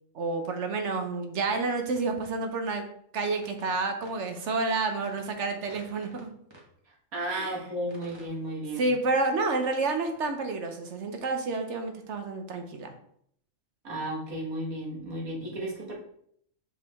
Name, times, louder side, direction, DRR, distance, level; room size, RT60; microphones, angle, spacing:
voice 1, 0.1-2.8 3.1-6.3 7.3-7.5 8.8-12.9, right 3 dB, 60° right, 5 dB, 1.1 m, -29 dB
sound 1, 1.5-1.6 2.0-2.1 3.4-3.7 4.0-4.1 4.5-6.2 6.5-6.7 7.4-7.5 7.9-8.3, right 1 dB, 20° right, 1.4 m, -52 dB
voice 2, 6.9-8.8 13.8-15.9, right 1 dB, 85° right, -2 dB, 2.0 m, -34 dB
6.1 x 4.8 x 3.5 m, 0.69 s
omnidirectional pair, 1.4 m